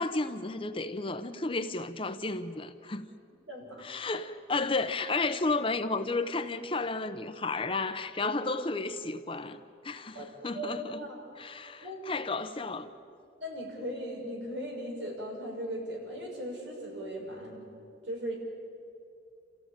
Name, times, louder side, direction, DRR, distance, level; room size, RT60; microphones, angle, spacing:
voice 1, 0.0-3.1 3.8-11.0 11.4-12.9, left 3 dB, 30° left, 0.8 m, -32 dB
voice 2, 3.5-3.8 10.1-11.3 11.8-12.0 13.4-17.7 18.1-18.3, equal, 80° right, 6.1 m, -38 dB
28.5 x 15.0 x 8.9 m
head